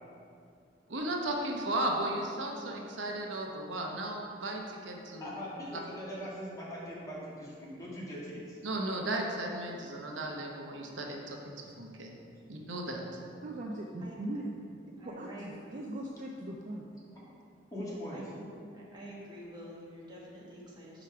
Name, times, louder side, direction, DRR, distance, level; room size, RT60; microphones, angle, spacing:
voice 1, 0.9-5.3 8.6-12.1 12.5-13.2, right 1 dB, 90° right, 1 dB, 0.9 m, -35 dB
voice 2, 5.2-8.6 17.7-18.2, equal, 20° left, -7 dB, 1.7 m, -41 dB
voice 3, 13.4-14.5 15.0-16.8, right 1 dB, 45° right, 0 dB, 0.5 m, -39 dB
voice 4, 15.0-15.9 18.1-21.0, equal, 25° right, -5 dB, 1.4 m, -47 dB
5.1 x 4.9 x 5.6 m, 2.4 s
head